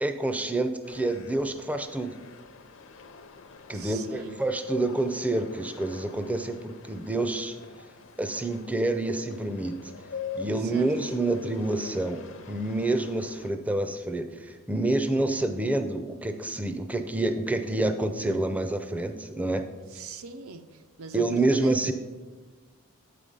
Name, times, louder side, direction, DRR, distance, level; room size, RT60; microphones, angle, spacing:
voice 1, 0.0-2.2 3.7-7.6 8.2-9.8 10.3-12.2 12.5-19.6 21.1-21.9, right 2 dB, 5° right, 7 dB, 0.4 m, -28 dB
sound 1, 0.8-13.5, left 5 dB, 60° left, 0.5 m, -45 dB
voice 2, 3.7-4.4 10.5-10.9 19.9-21.8, right 4 dB, 75° right, 9 dB, 0.6 m, -41 dB
8.3 x 5.0 x 5.4 m, 1.4 s
head